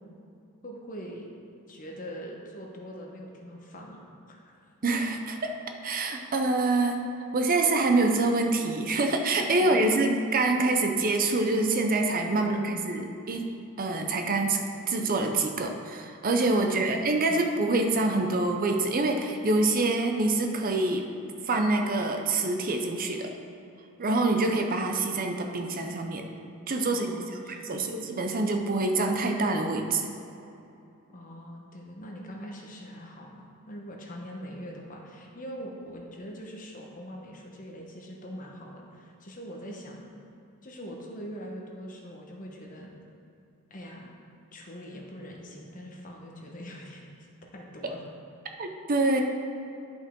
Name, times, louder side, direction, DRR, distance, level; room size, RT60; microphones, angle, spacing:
voice 1, 0.6-1.3 1.7-4.6 9.6-9.8 12.3-13.2 16.6-17.5 26.8-27.9 31.1-40.0 40.6-42.9 43.7-44.1 44.5-47.0 47.5-48.0, equal, 40° left, 0 dB, 1.1 m, -43 dB
voice 2, 4.8-5.5 5.8-7.0 7.3-21.1 21.5-23.3 24.0-26.2 26.7-27.1 27.5-30.1 48.6-49.2, right 2 dB, 40° right, 4 dB, 0.6 m, -26 dB
11.0 x 5.4 x 3.7 m, 2.7 s
head